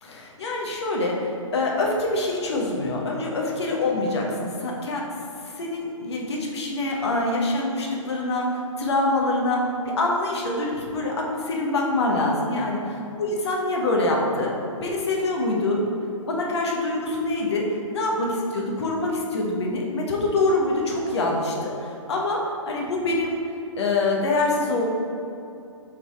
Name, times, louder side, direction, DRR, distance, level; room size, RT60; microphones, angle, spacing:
voice 1, 0.0-5.0 5.6-14.5 14.8-15.8 16.3-18.3 18.5-23.4 23.8-24.9, left 2 dB, 55° left, -1 dB, 1.2 m, -25 dB
5.4 x 4.0 x 4.6 m, 2.7 s
figure-of-eight pair, 125°, 17 cm